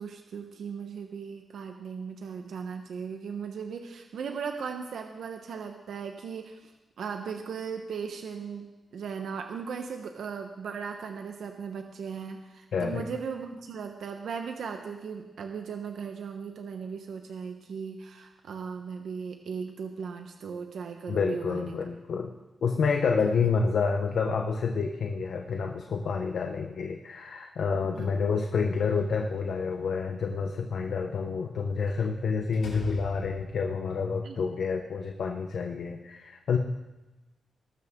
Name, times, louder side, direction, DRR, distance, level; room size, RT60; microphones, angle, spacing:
voice 1, 0.0-21.8 28.0-28.1 34.2-34.4, right 6 dB, 80° right, 4 dB, 1.1 m, -37 dB
voice 2, 12.7-13.0 21.1-36.6, left 5 dB, 65° left, 4 dB, 1.0 m, -28 dB
Slam, 28.7-29.7 31.9-32.1 32.5-33.7, left 3 dB, 90° left, 6.3 m, -44 dB
20.0 x 12.5 x 3.8 m, 1.1 s
wide cardioid pair, 160°, 0 cm